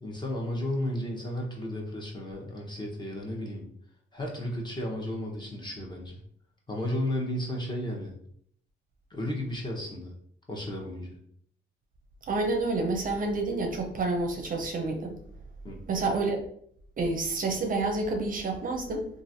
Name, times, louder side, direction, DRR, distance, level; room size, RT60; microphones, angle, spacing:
voice 1, 0.0-3.7 4.1-6.2 6.7-8.1 9.1-10.1 10.5-11.2 15.6-15.8, left 1 dB, 20° left, -1 dB, 0.9 m, -33 dB
voice 2, 12.3-15.2 15.9-16.5 17.0-19.1, right 3 dB, 45° right, 3 dB, 0.6 m, -29 dB
3.1 x 2.4 x 2.6 m, 0.65 s
cardioid pair, 90°, 20 cm